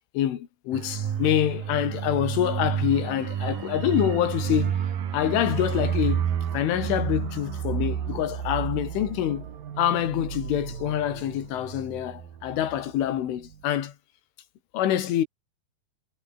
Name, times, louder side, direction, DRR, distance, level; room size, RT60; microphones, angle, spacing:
voice 1, 0.1-4.8 5.1-6.3 6.5-9.5 9.8-13.9 14.7-15.3, left 11 dB, 75° left, 4.8 m, -26 dB
sound 1, 0.7-13.1 13.4-13.6, right 9 dB, 50° right, 3.5 m, -31 dB
omnidirectional pair, 5.8 m